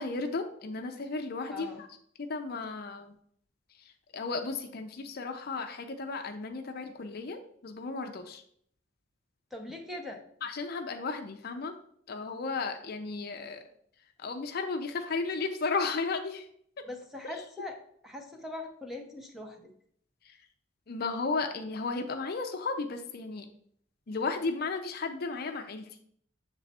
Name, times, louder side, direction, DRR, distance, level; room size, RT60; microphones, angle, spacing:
voice 1, 0.0-1.9 2.2-3.1 4.1-8.4 10.4-11.7 12.1-13.6 14.2-16.5 17.3-17.4 20.3-20.4 20.9-23.5 24.1-26.0, left 4 dB, 50° left, 5 dB, 0.5 m, -34 dB
voice 2, 1.5-1.8 9.5-10.2 16.9-17.7 18.0-19.6, left 2 dB, ahead, 2 dB, 0.8 m, -41 dB
7.1 x 3.3 x 4.1 m, 0.64 s
head